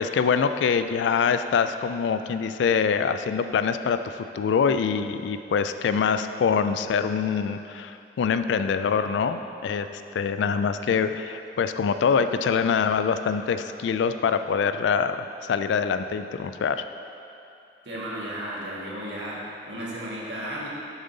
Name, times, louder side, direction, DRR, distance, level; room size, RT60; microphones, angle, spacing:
voice 1, 0.0-9.9 10.1-16.9, left 6 dB, 85° left, 10 dB, 0.3 m, -24 dB
voice 2, 17.8-19.4 19.7-20.7, right 1 dB, 80° right, -5 dB, 1.4 m, -34 dB
7.1 x 5.4 x 3.9 m, 2.7 s
head